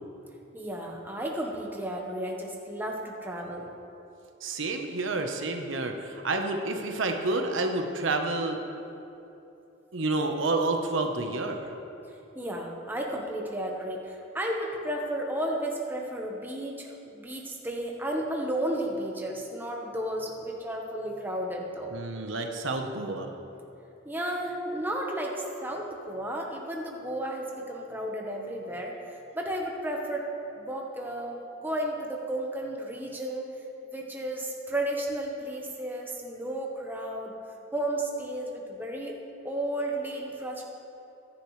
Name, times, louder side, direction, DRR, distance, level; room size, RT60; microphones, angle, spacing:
voice 1, 0.5-3.7 12.0-21.9 24.0-30.3 30.6-33.5 33.9-37.4 37.7-39.2 39.4-40.6, right 1 dB, 10° right, -1 dB, 1.2 m, -33 dB
voice 2, 4.4-8.6 9.9-11.7 21.9-23.3, right 2 dB, 75° right, 4 dB, 1.1 m, -29 dB
22.0 x 10.5 x 3.3 m, 2.9 s
head